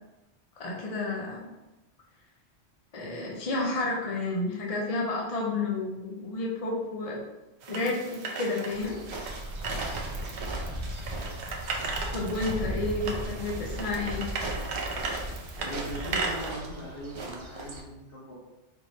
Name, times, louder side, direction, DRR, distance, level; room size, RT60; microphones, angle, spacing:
voice 1, 0.6-1.5 2.9-7.2 7.7-9.0 12.1-14.3, left 2 dB, 40° left, -2 dB, 0.6 m, -31 dB
sound 1, 7.6-16.5, right 3 dB, 70° right, 0.9 m, -36 dB
sound 2, 8.7-17.8, right 1 dB, 55° right, 0.3 m, -36 dB
voice 2, 12.9-13.7 15.6-18.3, equal, 65° left, -9 dB, 1.4 m, -40 dB
4.5 x 3.2 x 2.6 m, 1.0 s
omnidirectional pair, 1.2 m